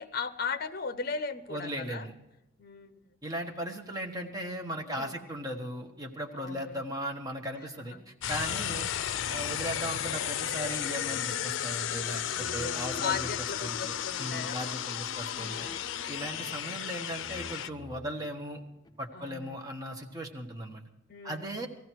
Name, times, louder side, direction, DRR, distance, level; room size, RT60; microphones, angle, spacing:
voice 1, 0.0-2.1 2.6-2.9 4.9-5.2 6.3-6.8 7.8-8.0 8.5-8.8 12.3-14.6 15.3-15.8 19.1-19.6 21.1-21.4, left 5 dB, 55° left, 11 dB, 0.8 m, -37 dB
voice 2, 1.5-2.1 3.2-8.9 9.3-13.3 13.6-15.7 16.1-18.6 19.0-20.9 21.2-21.7, equal, 20° right, 2 dB, 1.3 m, -37 dB
sound 1, 8.2-17.7, left 10 dB, 80° left, 0.4 m, -34 dB
sound 2, 8.3-13.5 14.2-14.7 15.3-16.8 17.1-19.1, left 2 dB, 20° left, 0.7 m, -50 dB
18.5 x 14.5 x 4.6 m, 0.94 s
head